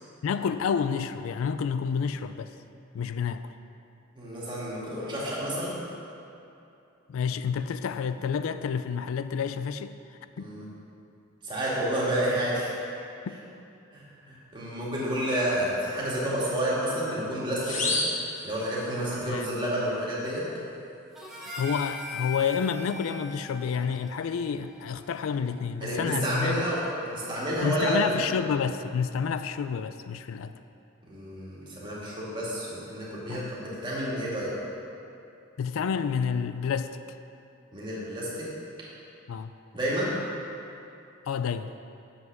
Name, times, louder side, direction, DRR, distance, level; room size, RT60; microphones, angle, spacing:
voice 1, 0.2-2.5 2.9-3.5 7.1-10.0 10.4-10.5 19.3-19.5 21.6-26.7 27.6-30.5 33.3-33.5 35.6-37.0 39.3-39.5 41.3-41.7, left 6 dB, 80° left, 11 dB, 0.3 m, -29 dB
voice 2, 4.1-5.8 10.4-10.7 11.4-12.7 13.9-18.0 18.4-20.4 25.8-28.3 31.1-34.5 37.7-38.5 39.7-40.1, right 1 dB, 20° right, -7 dB, 1.9 m, -30 dB
sound 1, 17.6-19.2, left 2 dB, 35° left, 1.0 m, -31 dB
Harmonica, 21.2-25.6, left 3 dB, ahead, 1.1 m, -41 dB
7.7 x 5.8 x 6.0 m, 2.7 s
head